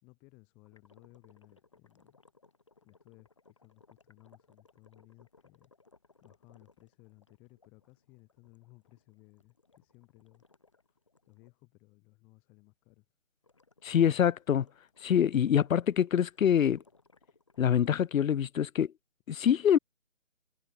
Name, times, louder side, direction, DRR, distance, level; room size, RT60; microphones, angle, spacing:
voice 1, 0.0-2.2 2.8-5.7 6.2-10.8 11.3-13.1, left 26 dB, 5° left, 2.6 m, -60 dB
sound 1, 0.7-11.5 13.4-17.9, left 3 dB, 25° left, 2.0 m, -65 dB
voice 2, 13.8-14.7 15.0-16.8 17.6-18.9 19.3-19.8, left 9 dB, 85° left, 0.5 m, -25 dB
figure-of-eight pair, 180°, 39 cm